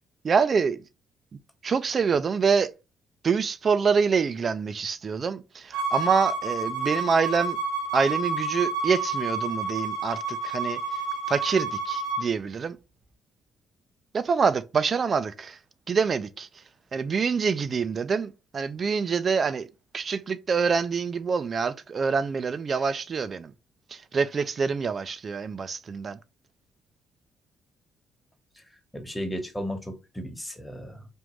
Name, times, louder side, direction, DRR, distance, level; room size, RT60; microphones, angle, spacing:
voice 1, 0.2-0.8 1.6-2.7 3.2-7.6 7.9-10.8 11.3-12.8 14.1-15.6 15.9-16.5 16.9-19.7 19.9-23.5 23.9-26.2, right 5 dB, 45° right, 0.4 m, -26 dB
Bowed string instrument, 5.7-12.3, right 3 dB, 80° right, 1.2 m, -29 dB
voice 2, 28.9-31.1, equal, 10° left, 1.2 m, -34 dB
3.6 x 2.5 x 3.0 m
supercardioid pair, 65°, 0 cm